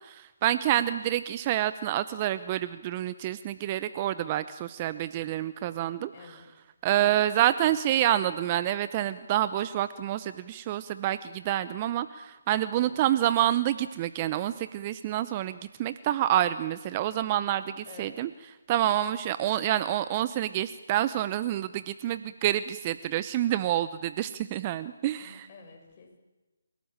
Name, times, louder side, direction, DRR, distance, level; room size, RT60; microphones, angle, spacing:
voice 1, 0.0-6.4 6.8-18.3 18.7-25.5, right 12 dB, 25° right, 14 dB, 0.7 m, -28 dB
voice 2, 0.7-1.1 6.1-6.6 6.9-7.2 7.6-7.8 12.8-13.0 17.8-18.2 25.2-26.2, left 4 dB, 30° left, 1 dB, 6.6 m, -50 dB
29.5 x 17.5 x 9.0 m, 1.1 s
figure-of-eight pair, 155°, 0 cm